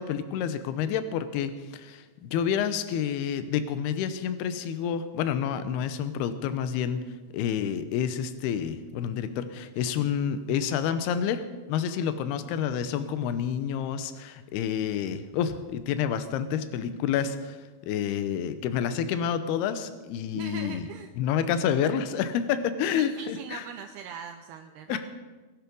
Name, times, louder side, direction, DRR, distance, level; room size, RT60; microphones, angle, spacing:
voice 1, 0.0-7.0 7.3-11.4 11.7-17.6 17.8-20.9 21.2-23.6 24.9-25.0, left 8 dB, 75° left, 11 dB, 2.6 m, -29 dB
voice 2, 20.3-21.1 22.9-25.0, right 8 dB, 80° right, 6 dB, 2.4 m, -41 dB
22.5 x 10.5 x 5.4 m, 1.3 s
omnidirectional pair, 5.2 m